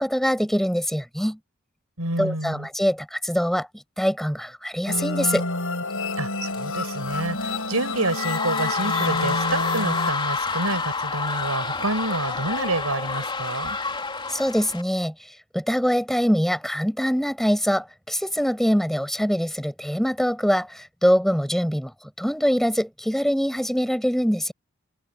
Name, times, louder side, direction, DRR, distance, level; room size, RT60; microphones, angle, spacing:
voice 1, 0.0-1.4 2.2-3.7 4.0-5.4 14.3-15.1 15.5-21.9 22.2-24.5, equal, ahead, 6.0 m, -23 dB
voice 2, 2.0-2.7 6.2-13.8, right 2 dB, 75° right, 6.2 m, -28 dB
sound 1, 4.9-10.1, left 2 dB, 65° left, 7.7 m, -29 dB
sound 2, 6.5-14.8, left 4 dB, 20° left, 3.7 m, -29 dB
head